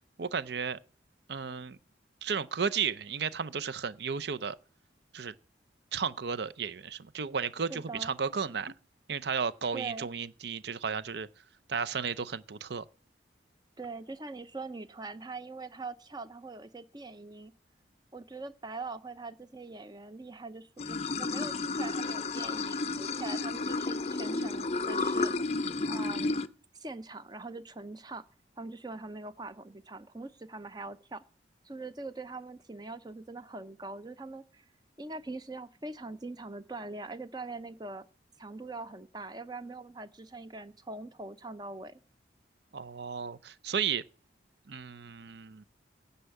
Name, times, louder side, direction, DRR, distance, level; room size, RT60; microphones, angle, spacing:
voice 1, 0.2-0.8 1.3-1.8 2.2-4.6 5.1-5.3 5.9-8.7 9.1-11.3 11.7-12.8 42.7-44.0 44.7-45.6, right 6 dB, 65° right, 0.6 m, -33 dB
voice 2, 7.7-8.1 9.7-10.1 13.8-17.5 18.1-25.3 25.9-26.4 26.7-28.2 28.6-31.2 31.6-34.6 35.0-38.1 38.4-42.0, right 3 dB, 20° right, 0.7 m, -42 dB
Water / Sink (filling or washing), 20.8-26.5, left 3 dB, 35° left, 0.5 m, -32 dB
9.9 x 5.7 x 8.1 m
head